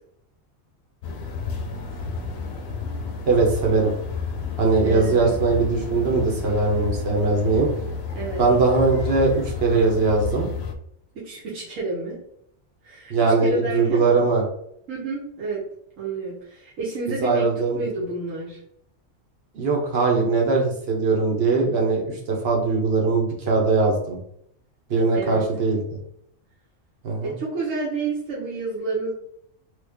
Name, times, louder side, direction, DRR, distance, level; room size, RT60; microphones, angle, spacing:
sound 1, 1.0-10.7, left 4 dB, 65° left, 0.7 m, -31 dB
voice 1, 3.2-3.9 4.6-7.7 8.4-9.3 9.6-10.5 13.1-14.4 17.2-17.8 19.5-24.2 24.9-25.8 27.0-27.3, right 3 dB, 55° right, -1 dB, 1.0 m, -20 dB
voice 2, 4.8-5.4 8.1-8.4 11.1-12.2 12.8-14.0 14.9-15.6 16.0-17.5 17.7-18.6 25.1-25.4 27.2-29.1, right 3 dB, 85° right, -8 dB, 1.3 m, -30 dB
3.2 x 2.4 x 3.4 m, 0.73 s
omnidirectional pair, 1.3 m